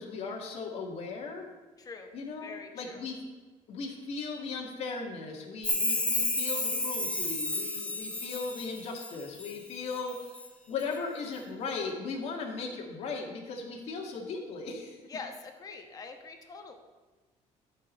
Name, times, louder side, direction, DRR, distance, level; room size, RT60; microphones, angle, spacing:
voice 1, 0.0-1.5 2.1-3.2 3.7-10.4 10.7-15.0, left 4 dB, 55° left, 0 dB, 2.1 m, -37 dB
voice 2, 1.8-2.1 2.4-3.0 15.1-16.7, left 4 dB, 30° left, 4 dB, 1.3 m, -44 dB
Chime, 5.6-9.5 9.9-10.5 10.8-10.9, left 2 dB, 10° left, 1.1 m, -31 dB
12.5 x 5.0 x 6.5 m, 1.2 s
cardioid pair, 155°, 13 cm